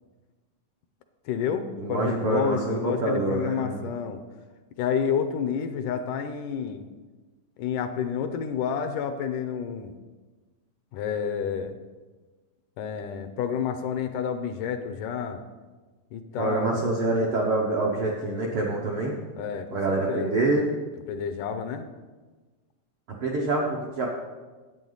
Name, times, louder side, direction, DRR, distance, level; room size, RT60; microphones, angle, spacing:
voice 1, 1.3-4.2 4.8-6.9 7.6-9.9 10.9-11.8 12.8-15.4 16.1-16.8 19.4-20.4 21.1-21.9, left 7 dB, 80° left, 7 dB, 2.1 m, -29 dB
voice 2, 1.8-3.8 16.4-19.2 19.7-20.6 23.2-24.1, right 2 dB, 70° right, -2 dB, 1.2 m, -26 dB
10.5 x 8.4 x 3.9 m, 1.3 s
omnidirectional pair, 3.8 m